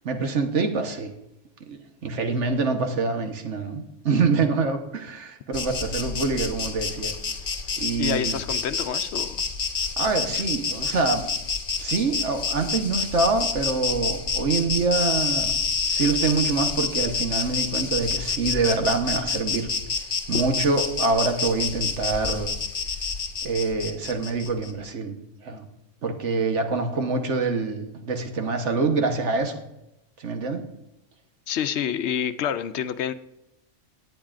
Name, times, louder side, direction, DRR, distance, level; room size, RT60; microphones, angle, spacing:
voice 1, 0.0-1.1 1.7-7.1 7.8-8.4 10.0-11.3 11.8-15.5 15.9-19.7 20.3-22.5 23.4-25.7 26.0-29.6 30.2-30.7, right 4 dB, 75° right, 5 dB, 1.4 m, -25 dB
Insect, 5.5-24.7, left 5 dB, 50° left, 1.1 m, -28 dB
voice 2, 8.0-9.4 10.3-10.4 31.5-33.1, left 8 dB, 70° left, 12 dB, 0.8 m, -28 dB
19.0 x 8.7 x 2.5 m, 0.89 s
omnidirectional pair, 1.2 m